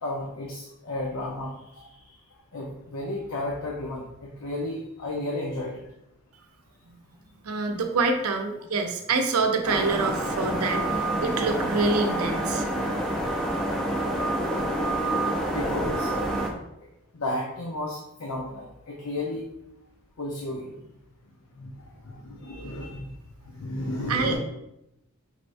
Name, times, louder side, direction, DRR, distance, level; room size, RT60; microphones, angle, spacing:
voice 1, 0.0-2.2 2.5-5.8 8.4-8.5 15.5-16.1 17.1-19.5 20.2-20.8 21.6-21.7 22.0-23.2 23.4-24.4, left 1 dB, 90° left, -1 dB, 0.6 m, -33 dB
voice 2, 7.4-12.7 24.1-24.4, right 3 dB, 85° right, 4 dB, 0.6 m, -26 dB
sound 1, 9.7-16.5, right 1 dB, ahead, 0.4 m, -27 dB
5.1 x 3.3 x 2.6 m, 0.85 s
head